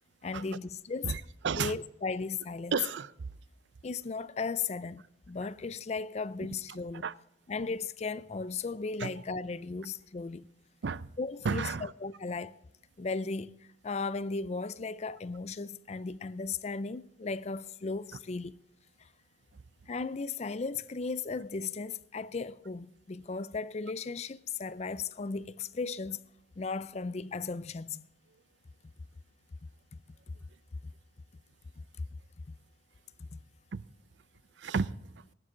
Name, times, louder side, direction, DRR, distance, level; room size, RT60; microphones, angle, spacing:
voice 1, 0.2-1.2 1.6-2.7 3.8-7.1 7.5-10.5 11.2-12.6 13.0-13.6 13.8-18.6 19.0-19.1 19.9-26.2 26.6-28.0 33.3-33.4, left 4 dB, 35° left, 0.4 m, -36 dB
voice 2, 1.0-1.7 2.7-3.1 7.0-7.1 9.0-9.1 10.8-11.1 11.4-11.9 33.7-33.8 34.6-34.9, right 5 dB, 70° right, 0.5 m, -32 dB
14.5 x 12.0 x 3.8 m
head